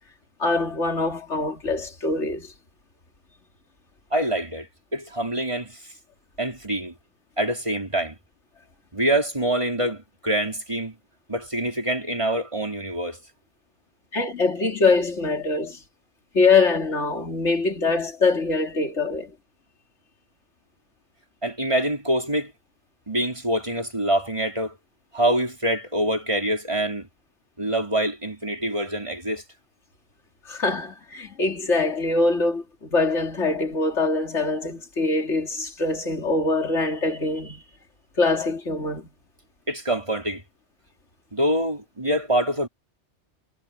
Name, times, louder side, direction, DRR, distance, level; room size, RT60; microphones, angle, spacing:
voice 1, 0.4-2.5 14.1-15.8 16.3-19.3 30.4-37.6 38.2-39.1, left 3 dB, 90° left, 3.1 m, -23 dB
voice 2, 4.1-5.8 6.4-6.9 7.4-8.2 8.9-10.9 11.3-13.2 21.4-22.5 23.1-24.8 25.1-27.1 27.6-29.4 39.7-40.4 41.3-42.7, right 1 dB, 25° right, 4.6 m, -25 dB
omnidirectional pair, 1.2 m